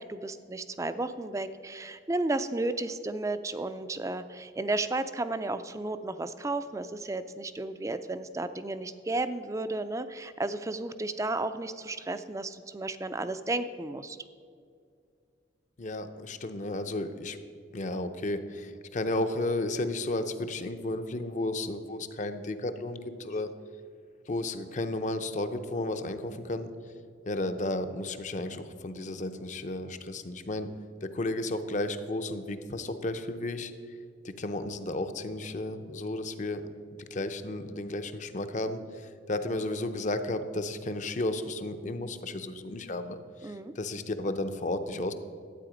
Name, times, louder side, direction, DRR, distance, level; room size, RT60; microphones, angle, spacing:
voice 1, 0.0-14.2 43.4-43.7, right 2 dB, 15° right, 12 dB, 0.4 m, -33 dB
voice 2, 15.8-17.4 17.7-23.5 24.3-26.7 27.3-30.7 31.0-33.7 34.2-36.6 37.1-38.8 39.3-45.1, left 2 dB, 40° left, 9 dB, 0.6 m, -33 dB
12.0 x 8.5 x 5.0 m, 2.3 s
head